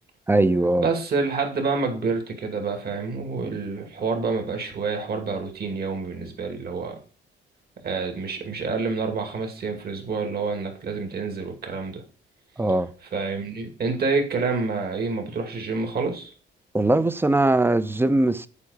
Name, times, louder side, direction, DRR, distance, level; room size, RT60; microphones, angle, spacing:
voice 1, 0.3-0.9 12.6-12.9 16.7-18.5, right 2 dB, 10° right, 0.6 m, -20 dB
voice 2, 0.8-7.0 7.8-12.0 13.1-16.3, right 4 dB, 50° right, 2.4 m, -28 dB
8.4 x 4.7 x 6.5 m
cardioid pair, 90°, 20 cm